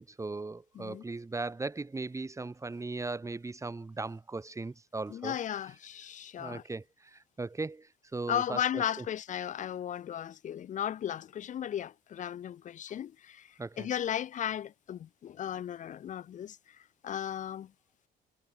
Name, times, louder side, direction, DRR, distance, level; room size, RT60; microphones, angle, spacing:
voice 1, 0.0-5.4 6.4-9.0 13.6-13.9, right 3 dB, 15° right, 4.0 m, -38 dB
voice 2, 5.1-6.6 8.3-13.4 13.8-16.6 17.0-17.7, left 10 dB, 45° left, 0.9 m, -35 dB
cardioid pair, 110°, 17 cm